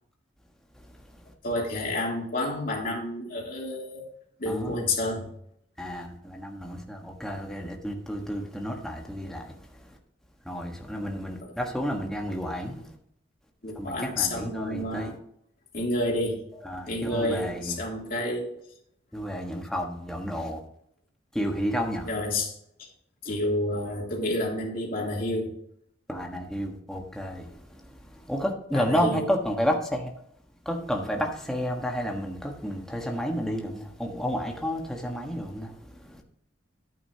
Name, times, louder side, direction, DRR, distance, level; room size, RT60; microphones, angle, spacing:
voice 1, 0.7-1.3 4.4-4.8 5.8-10.0 10.4-12.9 13.7-15.2 16.6-17.8 19.1-20.6 21.3-22.1 26.1-30.1 30.6-36.2, equal, 5° left, 1.4 m, -31 dB
voice 2, 1.4-4.0 4.4-5.3 13.6-15.1 15.7-16.4 16.9-18.5 22.1-22.9 23.2-25.5 28.7-29.2, left 1 dB, 50° left, 3.2 m, -29 dB
10.5 x 9.1 x 2.9 m
head